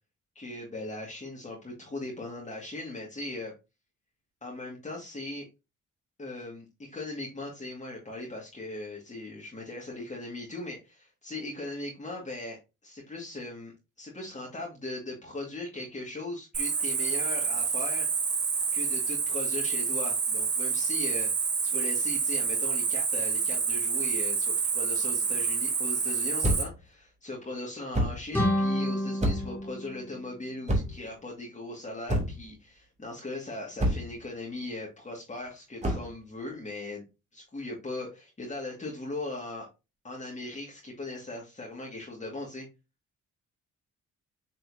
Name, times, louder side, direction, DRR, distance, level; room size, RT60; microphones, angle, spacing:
voice 1, 0.4-3.5 4.4-5.5 6.2-12.6 12.8-18.1 18.7-37.0 37.3-39.7 40.0-42.7, left 2 dB, 25° left, -2 dB, 2.1 m, -39 dB
Cricket, 16.5-26.6, right 5 dB, 50° right, 3.5 m, -28 dB
sound 1, 26.4-26.8 27.9-28.3 29.2-29.6 30.7-31.1 32.1-32.5 33.8-34.2 35.8-36.1, equal, 25° right, 2.7 m, -28 dB
sound 2, 28.3-31.1, equal, 5° left, 3.0 m, -30 dB
8.4 x 4.2 x 2.8 m, 0.26 s
cardioid pair, 90°, 30 cm